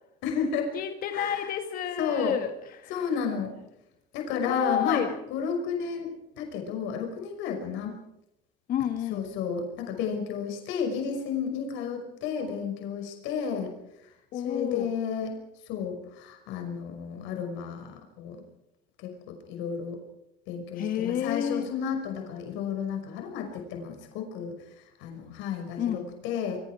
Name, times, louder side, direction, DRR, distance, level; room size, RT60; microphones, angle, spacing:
voice 1, 0.2-0.7 1.1-1.5 2.0-2.4 2.9-3.6 4.1-8.0 9.1-13.7 14.0-15.3 15.7-18.4 19.0-20.0 20.5-26.6, left 6 dB, 80° left, 4 dB, 5.8 m, -32 dB
voice 2, 0.7-2.9 4.3-5.1 8.7-9.3 14.3-14.9 20.7-21.7 25.8-26.1, left 9 dB, 50° left, 7 dB, 1.6 m, -30 dB
26.5 x 23.5 x 4.9 m, 0.82 s
cardioid pair, 155°, 19 cm